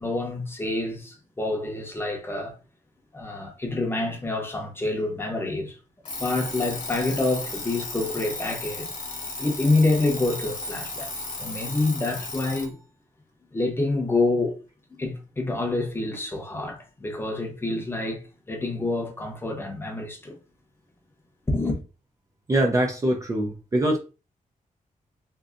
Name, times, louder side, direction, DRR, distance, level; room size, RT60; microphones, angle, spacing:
voice 1, 0.0-2.6 3.1-5.8 6.2-8.9 9.4-11.1 11.4-12.8 13.5-14.6 14.9-20.4 21.5-21.8, left 2 dB, 15° left, 0.8 m, -27 dB
Alarm, 6.0-12.7, left 2 dB, 65° left, 1.0 m, -35 dB
voice 2, 22.5-24.0, right 1 dB, 25° right, 0.4 m, -23 dB
3.7 x 2.6 x 2.4 m
wide cardioid pair, 155°, 14 cm